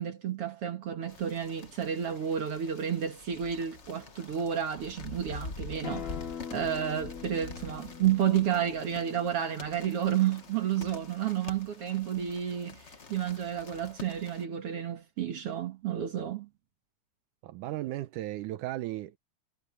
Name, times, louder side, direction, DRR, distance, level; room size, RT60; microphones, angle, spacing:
voice 1, 0.0-6.1 6.5-12.8 13.1-16.5, right 9 dB, 55° right, 2.2 m, -31 dB
sound 1, 1.1-14.4, left 3 dB, 35° left, 1.1 m, -46 dB
Acoustic guitar, 5.8-11.0, left 8 dB, 70° left, 2.8 m, -43 dB
voice 2, 17.4-19.2, right 15 dB, 85° right, 2.3 m, -35 dB
omnidirectional pair, 3.5 m